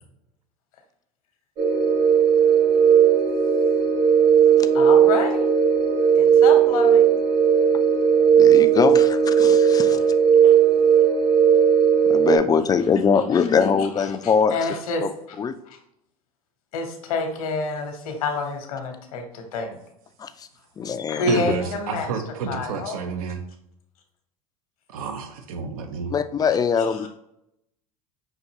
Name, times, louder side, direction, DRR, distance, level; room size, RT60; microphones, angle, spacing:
sound 1, 1.6-12.4, right 7 dB, 50° right, 1.4 m, -17 dB
voice 1, 4.7-5.5 6.1-7.1 9.9-10.0 10.4-10.5 13.3-13.5 13.8-15.4 15.6-15.8 16.7-19.8 21.1-22.1 22.5-23.0 26.8-27.1, left 3 dB, 75° left, 4 dB, 1.0 m, -29 dB
voice 2, 8.4-10.0 12.1-14.5 15.0-15.1 15.4-15.5 20.2-20.3 20.8-21.5 26.1-27.1, left 6 dB, 20° left, 10 dB, 0.4 m, -22 dB
voice 3, 21.3-23.4 24.9-26.1, right 5 dB, 70° right, 6 dB, 0.7 m, -29 dB
5.8 x 2.7 x 2.8 m, 0.78 s
hypercardioid pair, 80°, 19 cm